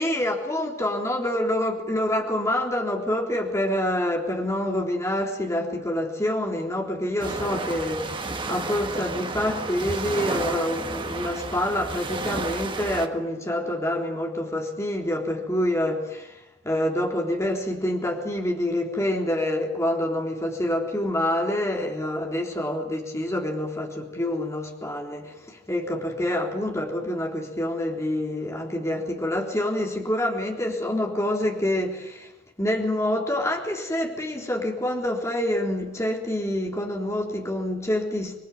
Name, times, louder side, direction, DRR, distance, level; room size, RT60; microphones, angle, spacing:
voice 1, 0.0-16.4 16.6-32.3 32.6-38.4, left 1 dB, 15° left, 3.7 m, -27 dB
sound 1, 7.2-13.1, right 3 dB, 25° right, 1.9 m, -32 dB
27.0 x 21.5 x 9.5 m
head